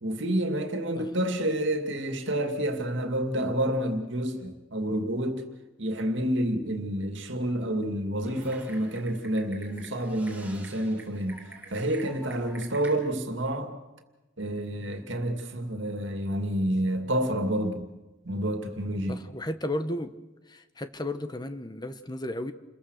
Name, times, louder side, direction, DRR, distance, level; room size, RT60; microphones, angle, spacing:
voice 1, 0.0-5.4 5.8-11.4 11.7-13.8 14.4-17.9 18.2-19.2, right 1 dB, 65° right, 2.5 m, -29 dB
Typing, 8.2-13.0, right 2 dB, 10° right, 4.2 m, -47 dB
voice 2, 19.1-20.1 20.5-22.5, left 1 dB, 20° left, 1.1 m, -34 dB
29.0 x 22.0 x 6.5 m
head